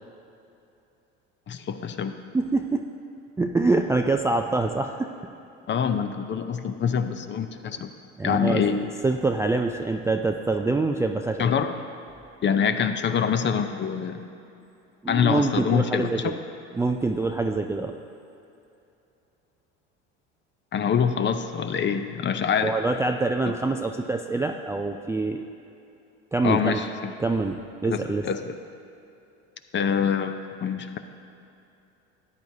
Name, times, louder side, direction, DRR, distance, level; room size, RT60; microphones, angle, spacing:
voice 1, 1.5-2.1 5.7-7.9 8.2-8.8 11.4-11.7 12.4-14.2 15.1-16.2 20.7-22.8 23.4-23.6 26.4-27.1 27.8-28.5 29.7-31.0, left 7 dB, 35° left, 9 dB, 0.6 m, -25 dB
voice 2, 2.3-2.8 3.4-5.1 8.2-8.6 9.0-11.5 15.0-16.4 16.7-17.9 22.6-25.4 26.3-26.8 27.2-28.3, right 3 dB, 10° right, 4 dB, 0.3 m, -25 dB
13.5 x 9.2 x 2.7 m, 2.7 s
hypercardioid pair, 70°, 35 cm